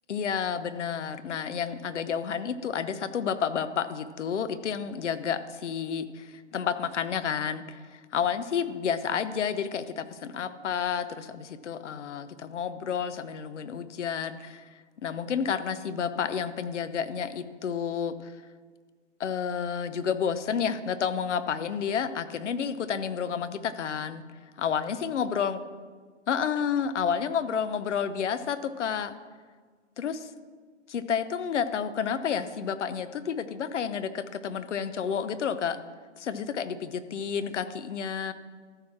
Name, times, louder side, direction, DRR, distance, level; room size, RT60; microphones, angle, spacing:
voice 1, 0.1-14.7 15.0-18.3 19.2-24.2 24.6-25.6 26.3-29.1 30.0-30.3 30.9-35.8 36.2-38.3, left 7 dB, 70° left, 13 dB, 0.9 m, -30 dB
13.5 x 4.9 x 6.0 m, 1.5 s
hypercardioid pair, 140°, 36 cm